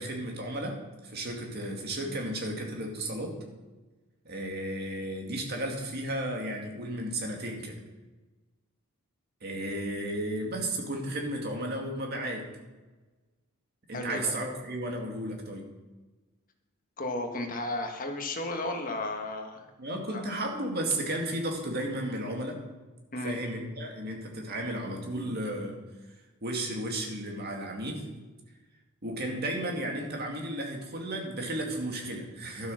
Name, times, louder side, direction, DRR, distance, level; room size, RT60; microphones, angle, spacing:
voice 1, 0.0-3.4 4.2-7.8 9.4-12.5 13.9-15.7 19.8-22.6 23.2-25.8 26.4-28.1 29.0-32.7, right 1 dB, 45° right, 1 dB, 2.2 m, -34 dB
voice 2, 13.9-14.3 17.0-19.7 20.1-20.2 23.1-23.3, left 2 dB, 40° left, 3 dB, 1.5 m, -33 dB
12.0 x 8.0 x 6.4 m, 1.2 s
head